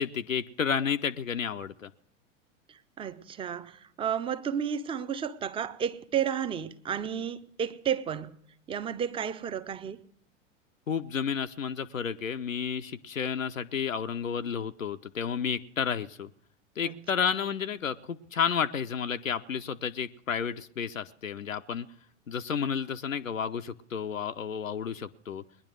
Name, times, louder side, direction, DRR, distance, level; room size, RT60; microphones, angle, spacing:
voice 1, 0.0-1.9 10.9-16.3 16.8-21.9 22.3-25.4, left 7 dB, 80° left, 0.7 m, -31 dB
voice 2, 2.7-8.4 8.7-10.0 16.8-16.9, right 8 dB, 15° right, 0.6 m, -32 dB
20.5 x 10.5 x 6.2 m
figure-of-eight pair, 90°, 39 cm